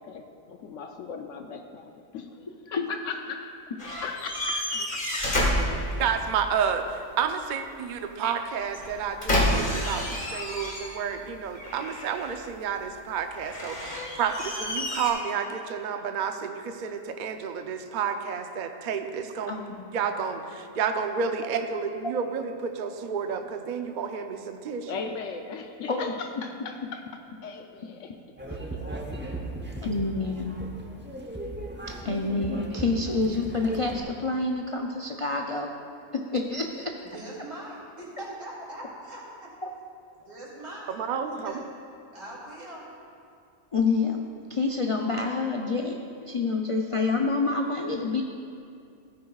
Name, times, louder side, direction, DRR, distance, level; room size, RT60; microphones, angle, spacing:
voice 1, 0.0-3.5 4.0-5.3 24.9-27.1 27.4-28.2 28.5-29.0 41.3-41.4, left 5 dB, 75° left, 5 dB, 0.9 m, -38 dB
sound 1, 3.8-6.4 8.7-11.2 11.5-12.4 13.4-15.1, left 1 dB, 40° left, 1.7 m, -29 dB
voice 2, 6.0-19.5 19.9-24.9 41.0-41.6, right 6 dB, 50° right, 6 dB, 0.6 m, -30 dB
voice 3, 19.5-19.9 25.9-26.1 28.5-28.6 29.8-30.5 32.0-35.7 36.1-36.9 39.6-39.7 43.7-44.2 44.5-46.0 46.2-48.2, left 3 dB, 60° left, 1 dB, 0.3 m, -27 dB
sound 2, 28.4-34.0, right 1 dB, 10° right, 0.6 m, -37 dB
voice 4, 37.1-39.5 40.2-41.0 41.2-41.6 42.1-42.9, right 1 dB, 75° right, -5 dB, 2.9 m, -41 dB
15.5 x 9.4 x 2.3 m, 2.4 s
omnidirectional pair, 1.3 m